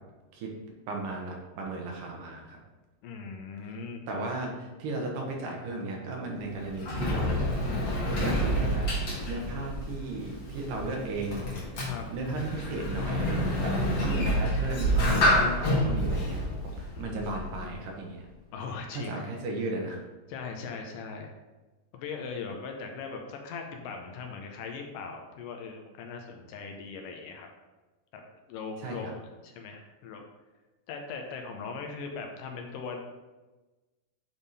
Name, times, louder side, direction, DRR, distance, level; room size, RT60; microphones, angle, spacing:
voice 1, 0.9-2.6 4.1-7.5 8.2-8.9 9.3-11.8 12.1-13.3 13.6-13.8 14.0-18.3 18.9-20.0 28.8-29.1, right 2 dB, 75° right, 0 dB, 2.7 m, -35 dB
voice 2, 3.0-4.6 11.8-12.1 16.9-17.8 18.5-19.3 20.3-21.3 21.9-27.5 28.1-28.2 28.5-30.2 30.9-33.0, left 5 dB, 75° left, 3 dB, 2.2 m, -40 dB
Sliding door, 6.3-17.7, equal, 45° left, 1.7 m, -28 dB
9.0 x 3.5 x 4.1 m, 1.2 s
omnidirectional pair, 4.0 m